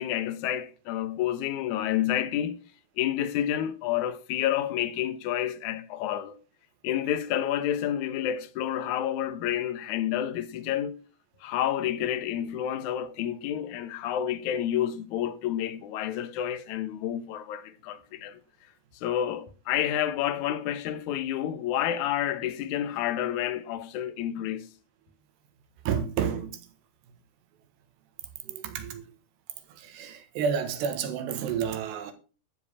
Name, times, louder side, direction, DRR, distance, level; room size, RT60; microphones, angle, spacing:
voice 1, 0.0-2.6 3.0-6.4 6.8-11.0 11.4-18.4 19.0-24.7, left 11 dB, 75° left, 1.8 m, -29 dB
voice 2, 25.9-26.7 28.4-29.0 29.7-32.1, right 7 dB, 90° right, 3.6 m, -30 dB
12.0 x 5.1 x 8.3 m
omnidirectional pair, 4.7 m